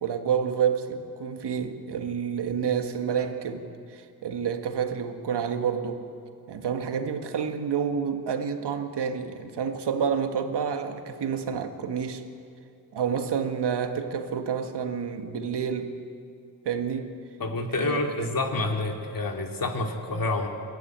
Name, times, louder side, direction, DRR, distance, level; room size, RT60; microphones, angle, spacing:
voice 1, 0.0-6.1 6.5-12.2 12.9-16.0 16.7-17.2 17.7-18.3, right 7 dB, 75° right, 6 dB, 1.7 m, -29 dB
voice 2, 17.4-20.5, left 2 dB, 55° left, 3 dB, 2.7 m, -28 dB
22.0 x 14.0 x 9.2 m, 2.4 s
cardioid pair, 60°, 41 cm